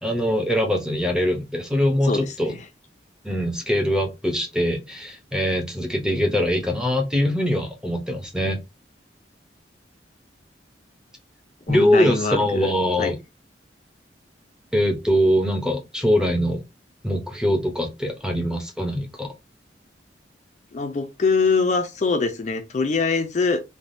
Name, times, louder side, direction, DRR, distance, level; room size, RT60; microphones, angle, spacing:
voice 1, 0.0-2.5 3.2-8.6 11.7-13.2 14.7-16.6 17.0-19.3, equal, 5° right, 0.6 m, -22 dB
voice 2, 2.0-2.6 11.7-12.7 13.0-13.1 20.7-23.6, left 4 dB, 40° left, 0.4 m, -23 dB
3.3 x 2.2 x 2.6 m
head